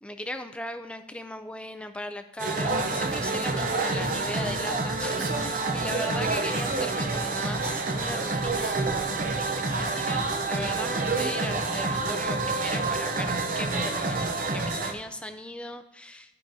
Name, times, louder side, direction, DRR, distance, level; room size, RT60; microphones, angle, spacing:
voice 1, 0.0-16.4, left 1 dB, 5° left, 8 dB, 0.4 m, -38 dB
sound 1, 2.4-14.9, right 3 dB, 45° right, 0.7 m, -28 dB
13.0 x 5.1 x 2.7 m, 0.92 s
head